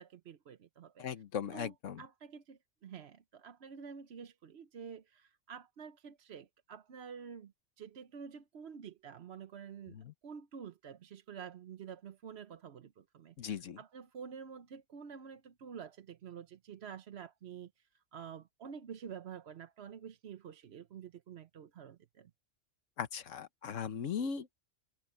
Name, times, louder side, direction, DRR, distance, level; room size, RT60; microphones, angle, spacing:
voice 1, 0.0-1.1 1.5-22.3, right 7 dB, 60° right, 1.0 m, -49 dB
voice 2, 1.0-2.0 9.9-10.1 13.4-13.8 23.0-24.5, left 7 dB, 80° left, 1.4 m, -38 dB
omnidirectional pair, 1.3 m